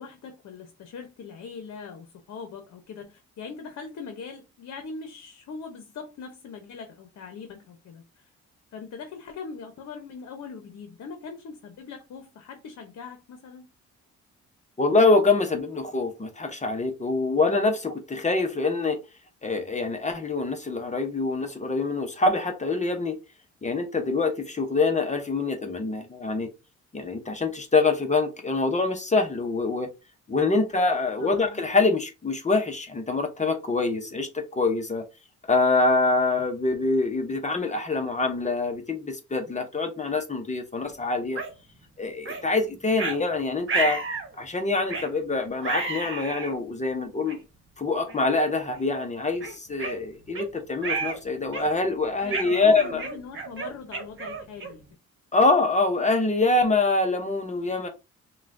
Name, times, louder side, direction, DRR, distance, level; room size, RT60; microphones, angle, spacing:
voice 1, 0.0-8.3 8.7-13.6 31.2-31.7 52.2-54.8, left 5 dB, 65° left, 0.9 m, -41 dB
voice 2, 14.8-19.0 19.4-23.2 23.6-26.5 26.9-29.9 30.3-35.1 35.5-41.4 42.0-44.0 44.4-47.4 47.8-53.0 55.3-57.9, left 3 dB, 25° left, 0.8 m, -25 dB
sound 1, 41.4-41.5 42.3-42.4 43.0-43.2 43.7-44.3 44.9-45.1 45.6-46.5 47.3-47.4 48.1-48.3 48.7-48.9 49.4-50.5 50.8-51.2 51.5-51.9 52.3-54.9, right 4 dB, 40° right, 1.1 m, -31 dB
5.5 x 2.3 x 2.6 m
cardioid pair, 90°, 30 cm